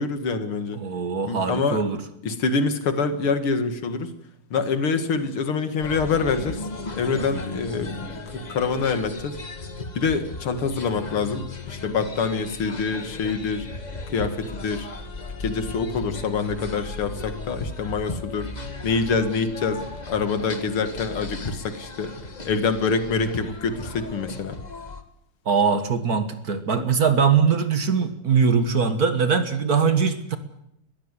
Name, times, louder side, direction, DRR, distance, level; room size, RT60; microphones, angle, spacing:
voice 1, 0.0-0.8 1.3-1.8 2.2-4.1 4.5-6.6 6.9-9.4 9.9-13.7 14.1-14.9 15.4-18.5 18.8-22.1 22.4-24.6, left 4 dB, 80° left, 9 dB, 2.7 m, -26 dB
voice 2, 0.7-2.0 25.5-30.4, right 6 dB, 45° right, 9 dB, 1.9 m, -21 dB
sound 1, 5.8-25.0, left 3 dB, 25° left, 1.3 m, -36 dB
21.5 x 15.0 x 9.8 m, 0.78 s
omnidirectional pair, 2.4 m